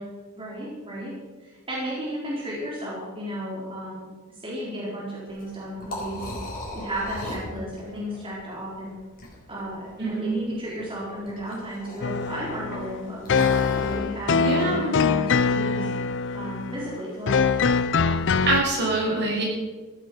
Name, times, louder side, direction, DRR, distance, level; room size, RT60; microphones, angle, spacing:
voice 1, 0.4-1.1 1.4-6.4 6.7-8.9 9.5-13.4 13.8-15.9 16.3-17.5, equal, 25° right, -6 dB, 3.9 m, -34 dB
Liquid, 5.3-14.0, left 1 dB, 45° left, 4.7 m, -38 dB
voice 2, 10.0-10.4 14.4-15.0 18.5-19.4, right 2 dB, 55° right, -2 dB, 5.7 m, -25 dB
sound 1, 12.0-18.6, left 5 dB, 60° left, 0.6 m, -23 dB
15.5 x 12.0 x 6.2 m, 1.4 s
head